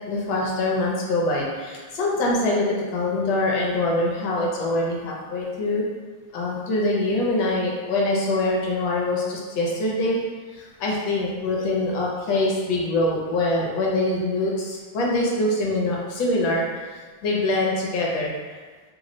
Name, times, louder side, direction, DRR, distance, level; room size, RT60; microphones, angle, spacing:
voice 1, 0.1-5.8 6.3-10.2 10.5-18.6, left 2 dB, 75° left, -3 dB, 1.3 m, -24 dB
3.3 x 2.1 x 3.7 m, 1.4 s
omnidirectional pair, 2.2 m